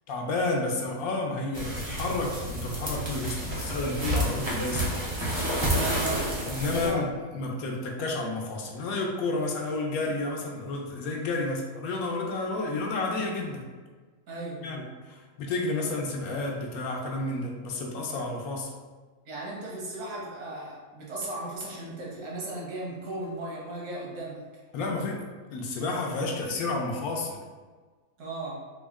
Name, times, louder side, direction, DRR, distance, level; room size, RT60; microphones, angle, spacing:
voice 1, 0.1-4.9 6.4-13.7 14.6-18.7 24.7-27.4, left 2 dB, 75° left, 1 dB, 1.0 m, -31 dB
sound 1, 1.5-6.9, equal, 35° right, 0.4 m, -30 dB
voice 2, 5.7-6.3 6.8-7.1 14.3-14.6 19.2-24.4 28.2-28.5, right 2 dB, 85° right, -4 dB, 1.5 m, -36 dB
3.7 x 2.0 x 3.5 m, 1.4 s
omnidirectional pair, 1.6 m